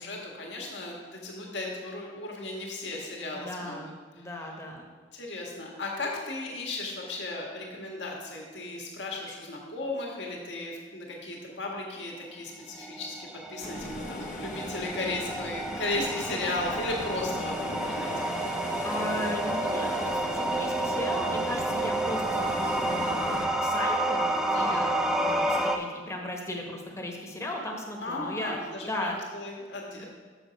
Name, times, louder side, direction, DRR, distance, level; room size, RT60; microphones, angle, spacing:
voice 1, 0.0-3.8 4.2-4.3 5.1-18.1 24.5-24.9 28.0-30.0, left 2 dB, 80° left, -1 dB, 1.7 m, -35 dB
voice 2, 3.3-4.8 18.8-28.6 28.9-29.2 30.0-30.1, left 1 dB, 15° left, 1 dB, 1.0 m, -36 dB
sound 1, 12.6-25.8, right 1 dB, 5° right, 0.4 m, -30 dB
sound 2, 13.6-23.5, left 2 dB, 45° left, 0.7 m, -39 dB
6.9 x 6.6 x 5.1 m, 1.5 s
head